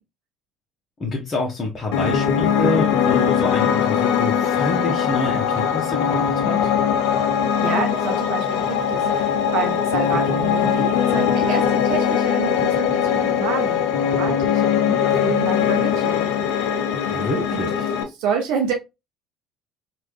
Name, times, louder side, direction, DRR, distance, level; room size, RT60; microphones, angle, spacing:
voice 1, 1.0-6.6 17.1-17.9, left 2 dB, 35° left, 0.9 m, -27 dB
Piano, 1.9-18.0, left 8 dB, 70° left, 0.5 m, -21 dB
voice 2, 7.6-16.5 17.5-17.6 18.2-18.7, right 6 dB, 70° right, 0.7 m, -28 dB
3.2 x 2.5 x 3.1 m
hypercardioid pair, 60°, 0 cm